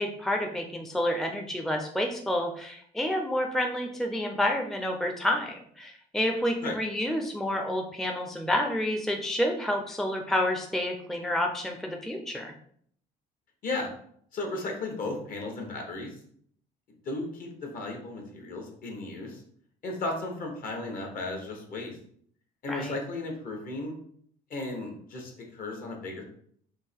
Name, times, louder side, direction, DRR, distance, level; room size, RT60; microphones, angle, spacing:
voice 1, 0.0-12.5 22.7-23.0, left 1 dB, ahead, 2 dB, 0.5 m, -29 dB
voice 2, 14.3-16.1 17.0-19.4 19.8-22.0 22.6-23.9 24.5-26.2, left 2 dB, 55° left, 1 dB, 1.2 m, -35 dB
3.7 x 2.8 x 4.4 m, 0.64 s
cardioid pair, 110°, 17 cm